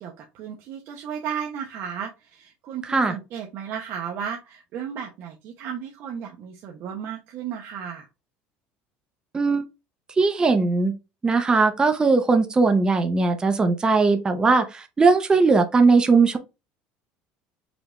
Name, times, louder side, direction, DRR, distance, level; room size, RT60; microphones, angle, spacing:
voice 1, 0.0-8.1, right 8 dB, 60° right, 0.8 m, -34 dB
voice 2, 2.8-3.1 9.3-9.6 10.2-10.9 11.2-16.4, right 4 dB, 20° right, 0.6 m, -19 dB
5.1 x 2.4 x 3.0 m
cardioid pair, 120°, 4 cm